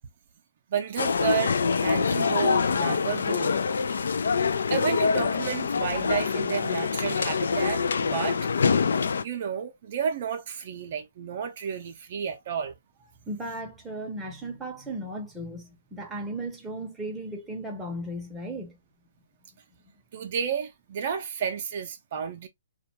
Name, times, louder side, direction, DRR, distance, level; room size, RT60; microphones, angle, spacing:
voice 1, 0.7-3.6 4.7-8.5 9.2-12.7 20.1-22.5, right 7 dB, 50° right, 0.5 m, -31 dB
sound 1, 1.0-9.2, left 5 dB, 75° left, 0.3 m, -25 dB
voice 2, 13.3-18.8, right 1 dB, 5° right, 0.7 m, -36 dB
2.5 x 2.2 x 2.8 m
hypercardioid pair, 145°, 0 cm